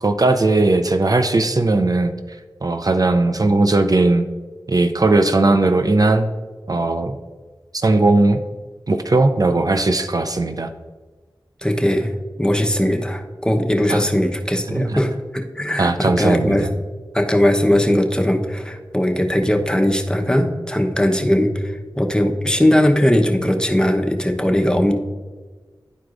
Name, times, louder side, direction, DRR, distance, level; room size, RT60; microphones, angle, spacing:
voice 1, 0.0-2.1 2.6-4.2 4.7-6.3 6.7-7.2 7.8-8.4 8.9-10.7 13.9-14.0 14.7-15.0 15.8-16.7, right 2 dB, 50° right, 8 dB, 0.5 m, -17 dB
voice 2, 11.6-16.7 17.1-24.9, left 1 dB, 10° left, 3 dB, 0.9 m, -19 dB
11.5 x 4.6 x 2.5 m, 1.3 s
wide cardioid pair, 40°, 8 cm